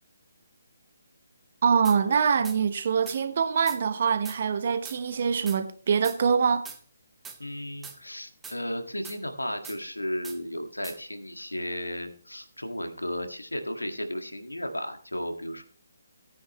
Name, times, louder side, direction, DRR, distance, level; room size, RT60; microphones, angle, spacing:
voice 1, 1.6-6.7, right 6 dB, 45° right, 1.1 m, -24 dB
sound 1, 1.8-2.0 2.4-2.6 3.1-3.2 3.7-3.8 4.2-4.4 4.8-5.0 5.5-5.6 6.0-6.2 6.7-6.8 7.2-7.4 7.8-8.0 8.4-8.6 9.0-9.2 9.6-9.8 10.2-10.4 10.8-11.0, right 5 dB, 10° right, 0.9 m, -42 dB
voice 2, 7.4-15.6, equal, 85° left, 1.9 m, -34 dB
16.0 x 9.4 x 3.1 m
figure-of-eight pair, 145°, 0 cm